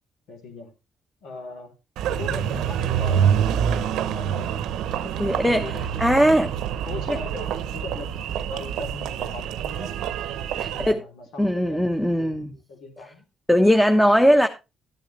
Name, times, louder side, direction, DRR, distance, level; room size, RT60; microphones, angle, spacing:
voice 1, 0.3-0.7 1.2-1.7 2.1-4.4 5.2-10.0 10.7-13.2, left 3 dB, 85° left, 3.1 m, -39 dB
Engine, 2.0-10.9, right 9 dB, 90° right, 0.8 m, -26 dB
voice 2, 5.0-5.6 6.0-6.5 7.1-7.2 10.6-11.0 11.4-12.5 13.5-14.5, equal, 5° left, 1.0 m, -19 dB
13.0 x 9.0 x 3.2 m
cardioid pair, 90°, 0 cm